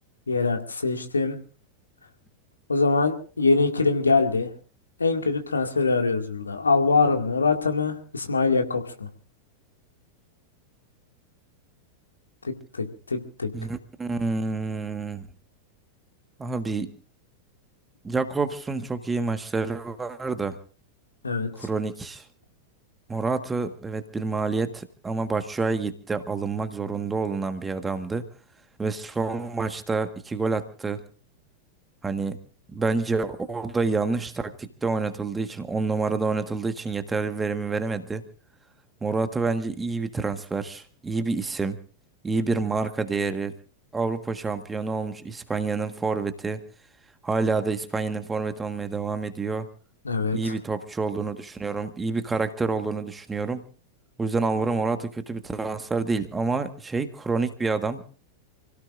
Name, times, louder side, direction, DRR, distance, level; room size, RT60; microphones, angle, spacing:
voice 1, 0.3-1.4 2.7-4.5 5.0-9.1 12.4-13.5 21.2-21.5 50.0-50.5, left 4 dB, 75° left, 5 dB, 2.2 m, -23 dB
voice 2, 13.5-15.3 16.4-16.9 18.0-20.6 21.6-22.2 23.1-28.3 28.8-31.0 32.0-32.4 32.7-38.2 39.0-41.8 42.2-43.5 43.9-46.6 47.2-49.7 50.3-53.6 54.2-58.0, right 4 dB, 15° right, 9 dB, 1.5 m, -28 dB
28.5 x 17.0 x 2.6 m, 0.39 s
figure-of-eight pair, 90°, 0 cm